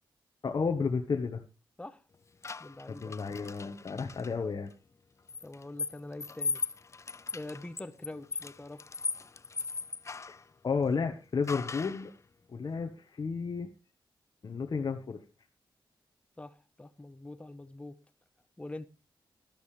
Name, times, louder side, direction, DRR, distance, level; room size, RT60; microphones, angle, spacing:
voice 1, 0.4-1.4 2.9-4.7 10.3-10.4 10.6-12.1 12.5-13.7 14.4-15.2, left 5 dB, 50° left, 1.3 m, -32 dB
sound 1, 2.4-4.3 5.3-10.4 11.5-12.1, left 4 dB, 35° left, 0.5 m, -38 dB
voice 2, 2.6-3.2 5.4-6.6 7.3-8.8 16.4-18.0 18.6-18.9, left 2 dB, 15° left, 1.1 m, -44 dB
13.0 x 12.0 x 3.3 m
cardioid pair, 85°, 8 cm